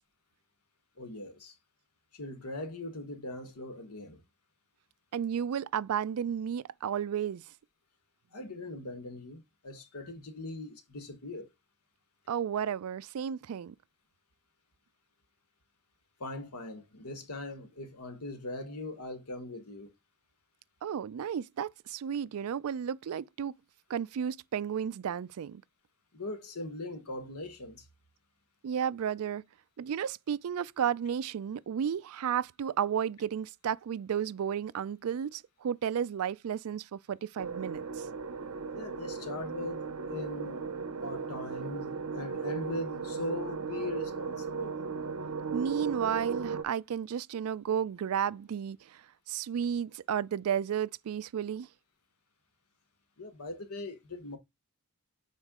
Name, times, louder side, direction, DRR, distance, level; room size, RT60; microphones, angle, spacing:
voice 1, 1.0-1.5 2.1-4.2 8.3-11.5 16.2-19.9 26.1-27.8 38.7-40.6 41.0-44.8 53.2-54.4, left 2 dB, 80° left, 1.4 m, -40 dB
voice 2, 5.1-7.4 12.3-13.7 20.8-23.6 23.9-25.6 28.6-29.4 29.8-38.0 45.5-48.8 49.3-51.7, right 8 dB, 70° right, 0.3 m, -33 dB
sound 1, 37.4-46.6, right 5 dB, 85° right, 0.8 m, -36 dB
6.4 x 4.4 x 3.6 m
head